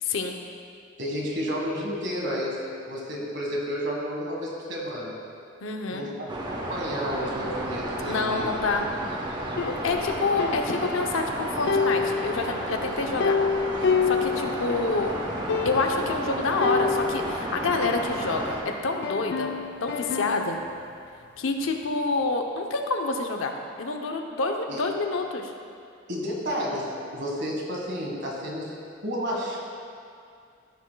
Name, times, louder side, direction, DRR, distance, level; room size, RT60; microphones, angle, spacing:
voice 1, 1.0-2.6 2.9-5.1 5.9-6.2 6.7-8.5 24.7-24.8 26.1-28.7 29.0-29.6, equal, 60° right, -2 dB, 1.5 m, -31 dB
voice 2, 5.6-6.1 8.1-8.9 9.7-13.4 14.1-15.1 15.6-19.5 19.8-20.6 21.4-25.5, left 3 dB, 80° left, 3 dB, 0.7 m, -27 dB
sound 1, 6.3-18.6, right 1 dB, 25° right, 0.8 m, -32 dB
sound 2, 9.6-11.3 11.7-15.0 15.2-15.3 15.5-16.1 16.6-18.6 19.0-20.7, left 5 dB, 60° left, 0.3 m, -29 dB
14.0 x 6.2 x 2.3 m, 2.4 s
head